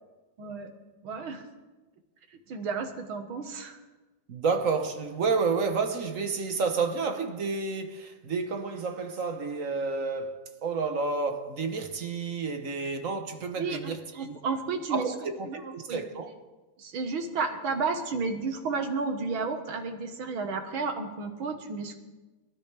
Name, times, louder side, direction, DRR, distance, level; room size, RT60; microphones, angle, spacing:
voice 1, 0.4-0.7 1.0-1.5 2.3-3.8 13.6-15.1 15.5-15.6 15.9-16.0 16.8-22.0, right 4 dB, 90° right, 2.2 m, -32 dB
voice 2, 4.3-14.3 14.9-16.3, right 4 dB, 50° right, 1.3 m, -30 dB
24.0 x 13.0 x 3.4 m
omnidirectional pair, 2.2 m